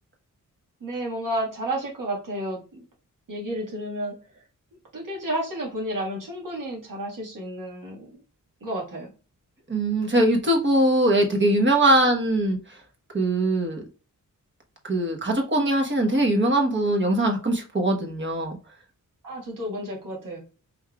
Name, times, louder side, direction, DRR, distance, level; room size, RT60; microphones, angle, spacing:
voice 1, 0.8-2.8 3.3-4.1 4.9-8.2 8.6-9.1 19.2-20.4, right 1 dB, 70° right, -1 dB, 1.8 m, -31 dB
voice 2, 9.7-12.6 13.1-13.8 14.9-18.6, right 1 dB, 35° right, 2 dB, 1.1 m, -21 dB
5.4 x 3.5 x 2.3 m, 0.35 s
wide cardioid pair, 155°, 33 cm